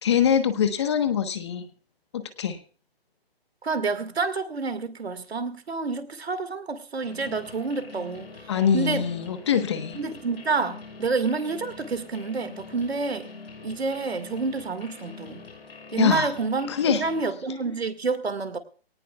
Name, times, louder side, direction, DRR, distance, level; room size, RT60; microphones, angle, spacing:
voice 1, 0.0-1.6 2.1-2.6 8.5-10.0 16.0-16.3 16.7-17.0, left 8 dB, 25° left, 1.3 m, -23 dB
voice 2, 3.6-8.3 8.7-9.1 9.9-13.3 13.6-15.5 15.9-18.6, right 4 dB, 80° right, 2.1 m, -28 dB
sound 1, 7.0-17.2, left 4 dB, 70° left, 6.1 m, -44 dB
23.0 x 18.0 x 2.4 m
hypercardioid pair, 170°, 31 cm